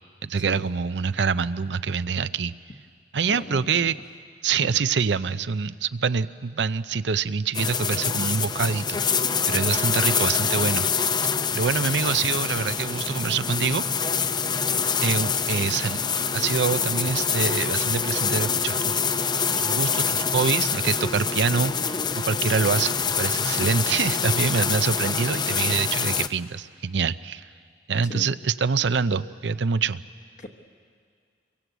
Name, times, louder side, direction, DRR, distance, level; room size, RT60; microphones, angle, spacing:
voice 1, 0.2-2.5 3.1-3.9 4.4-9.0 9.5-11.2 11.5-13.8 15.0-16.0 16.3-27.5 27.9-30.0, right 5 dB, 75° right, 14 dB, 0.6 m, -25 dB
voice 2, 3.3-3.9 4.6-4.7 23.6-23.7 28.1-28.3 30.4-30.5, left 1 dB, 45° left, 4 dB, 1.2 m, -37 dB
sound 1, 7.5-26.3, left 6 dB, 25° left, 0.6 m, -25 dB
27.0 x 23.0 x 8.1 m, 2.1 s
head